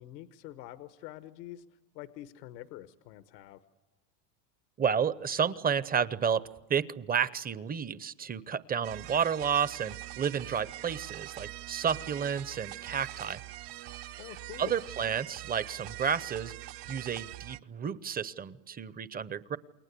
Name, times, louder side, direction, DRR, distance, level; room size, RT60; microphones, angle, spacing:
voice 1, 0.0-3.6 14.2-14.8, left 14 dB, 80° left, 11 dB, 1.3 m, -46 dB
voice 2, 4.8-13.4 14.6-16.5 16.9-19.6, right 7 dB, 20° right, 17 dB, 0.8 m, -31 dB
sound 1, 8.8-17.6, right 16 dB, 50° right, 1.0 m, -43 dB
29.0 x 22.5 x 8.3 m, 1.2 s
supercardioid pair, 120°, 49 cm